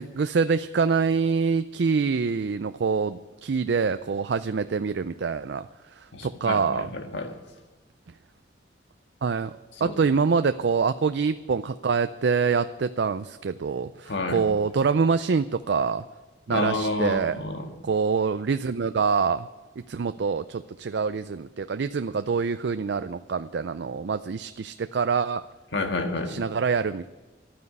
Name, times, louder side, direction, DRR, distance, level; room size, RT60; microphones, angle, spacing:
voice 1, 0.0-6.9 9.2-9.5 9.8-16.0 16.5-17.4 17.8-19.5 19.8-25.4 26.3-27.1, right 5 dB, 70° right, 11 dB, 0.4 m, -25 dB
voice 2, 6.1-7.4 9.8-9.9 14.1-14.4 16.5-17.7 25.7-26.4, left 2 dB, 75° left, 5 dB, 1.7 m, -29 dB
12.0 x 9.4 x 9.8 m, 1.2 s
head